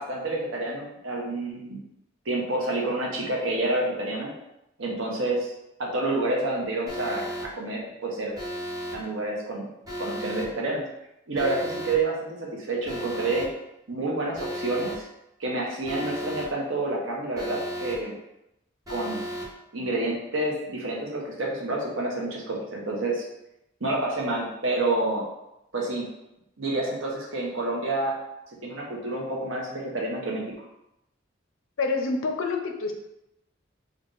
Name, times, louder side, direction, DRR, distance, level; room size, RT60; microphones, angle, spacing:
voice 1, 0.0-1.8 2.2-4.3 4.8-5.5 5.8-7.2 7.5-8.4 8.9-9.7 10.0-10.8 11.3-13.5 13.9-15.0 15.4-18.1 18.9-19.2 19.7-23.2 23.8-25.2 25.7-26.1 26.6-28.1 28.6-30.4, right 2 dB, 85° right, -2 dB, 1.0 m, -28 dB
Alarm, 6.9-7.4 8.3-8.9 9.8-10.4 11.3-11.9 12.8-13.4 14.3-14.9 15.8-16.4 17.3-17.9 18.8-19.4, equal, 20° right, 1.1 m, -34 dB
voice 2, 31.8-32.9, left 3 dB, 90° left, 4 dB, 0.6 m, -27 dB
3.7 x 2.6 x 3.9 m, 0.86 s
head